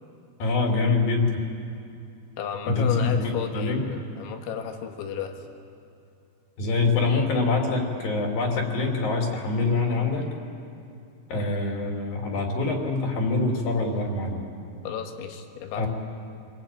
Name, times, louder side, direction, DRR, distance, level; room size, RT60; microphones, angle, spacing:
voice 1, 0.4-1.3 2.7-3.8 6.6-10.2 11.3-14.4 15.7-15.9, left 3 dB, 55° left, 1 dB, 4.2 m, -25 dB
voice 2, 2.4-5.4 14.8-15.9, left 8 dB, 80° left, 4 dB, 4.0 m, -33 dB
26.5 x 20.5 x 8.9 m, 2.5 s
omnidirectional pair, 5.3 m